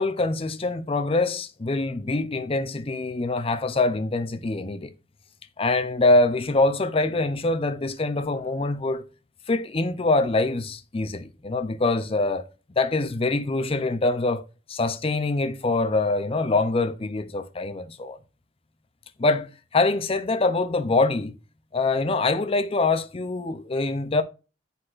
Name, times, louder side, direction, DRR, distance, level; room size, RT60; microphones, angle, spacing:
voice 1, 0.0-4.9 5.6-9.0 9.5-12.4 12.8-14.4 14.7-18.2 19.2-21.4 21.7-24.2, left 2 dB, 35° left, 0.6 m, -24 dB
9.7 x 4.1 x 2.5 m
head